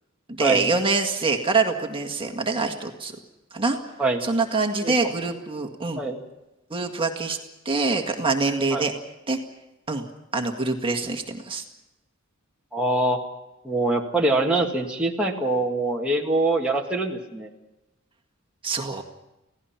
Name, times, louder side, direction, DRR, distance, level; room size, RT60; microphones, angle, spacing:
voice 1, 0.3-3.1 3.5-3.8 4.2-6.0 6.7-7.4 7.7-8.9 9.3-9.4 9.9-10.1 10.3-11.6 18.6-19.0, right 3 dB, 25° right, 4 dB, 1.9 m, -25 dB
voice 2, 4.8-5.1 6.0-6.2 8.7-8.9 12.7-13.2 13.6-17.5, right 2 dB, 5° right, -2 dB, 1.8 m, -24 dB
29.0 x 17.5 x 5.9 m, 0.95 s
head